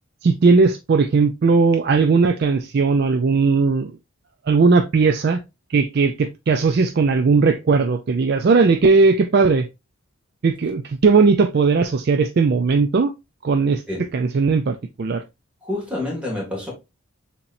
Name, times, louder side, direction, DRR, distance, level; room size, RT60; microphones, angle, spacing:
voice 1, 0.2-3.9 4.5-5.4 5.7-9.7 10.4-13.1 13.4-13.8 14.1-15.2, right 4 dB, 50° right, 0.4 m, -17 dB
voice 2, 15.6-16.7, left 2 dB, 5° right, 1.9 m, -27 dB
6.9 x 3.0 x 2.5 m
head